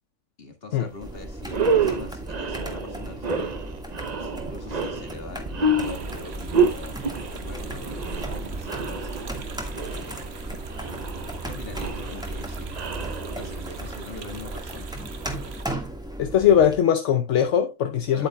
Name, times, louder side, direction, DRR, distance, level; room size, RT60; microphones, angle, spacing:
voice 1, 0.4-3.6 4.2-7.0 7.3-9.1 9.9-10.5 11.4-14.9 18.1-18.3, left 3 dB, 50° left, 2.0 m, -43 dB
sound 1, 0.9-1.1 1.4-13.8, right 3 dB, 40° right, 0.8 m, -28 dB
sound 2, 1.0-16.8, right 1 dB, 5° right, 1.5 m, -36 dB
sound 3, 5.8-15.7, right 4 dB, 60° right, 1.3 m, -40 dB
voice 2, 16.2-18.3, left 9 dB, 75° left, 1.1 m, -20 dB
9.9 x 8.6 x 2.2 m
omnidirectional pair, 1.2 m